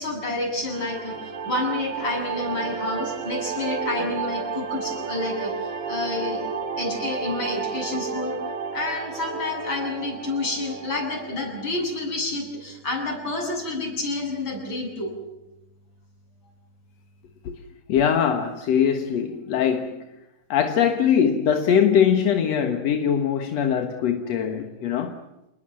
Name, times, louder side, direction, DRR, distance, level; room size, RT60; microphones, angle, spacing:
voice 1, 0.0-6.4 6.8-8.4 8.7-15.1, left 2 dB, 30° left, 2 dB, 8.0 m, -29 dB
sound 1, 0.6-11.7, right 5 dB, 45° right, 1.6 m, -32 dB
voice 2, 17.9-20.0 20.5-25.2, left 8 dB, 60° left, 6 dB, 2.1 m, -22 dB
28.5 x 20.5 x 7.6 m, 0.95 s
omnidirectional pair, 4.1 m